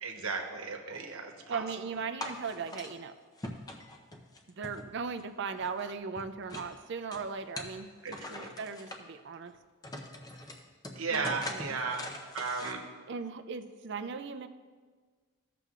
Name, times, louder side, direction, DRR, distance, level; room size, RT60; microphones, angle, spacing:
voice 1, 0.0-1.6 1.9-2.0 8.0-8.5 10.9-12.8, right 4 dB, 75° right, 3 dB, 1.0 m, -35 dB
voice 2, 1.5-3.1 4.6-7.9 8.3-9.5 11.1-11.6 13.1-14.5, right 5 dB, 55° right, 9 dB, 0.4 m, -38 dB
sound 1, 2.2-2.9 3.4-5.2 5.5-6.7 7.1-9.0 9.5-9.6 9.8-12.7, left 1 dB, 15° left, 0.6 m, -43 dB
15.0 x 6.8 x 2.4 m, 1.5 s
head